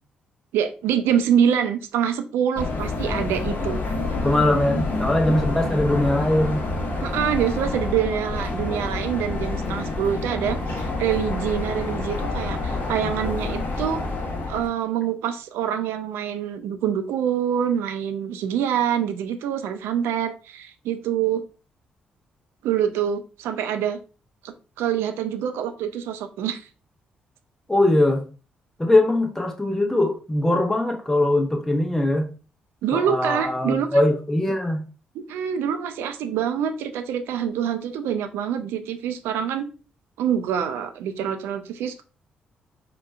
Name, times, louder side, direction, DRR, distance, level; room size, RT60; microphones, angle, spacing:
voice 1, 0.5-3.8 7.0-14.0 14.5-21.4 22.6-24.0 24.8-26.7 32.8-33.9 35.1-39.7 40.2-42.0, right 9 dB, 60° right, 8 dB, 0.4 m, -25 dB
sound 1, 2.5-14.7, left 2 dB, 45° left, 0.8 m, -28 dB
voice 2, 4.0-6.7 27.7-28.2 28.8-32.2 32.9-34.8, left 1 dB, 10° left, 3 dB, 0.8 m, -21 dB
4.9 x 2.2 x 2.2 m, 0.35 s
figure-of-eight pair, 40°, 4 cm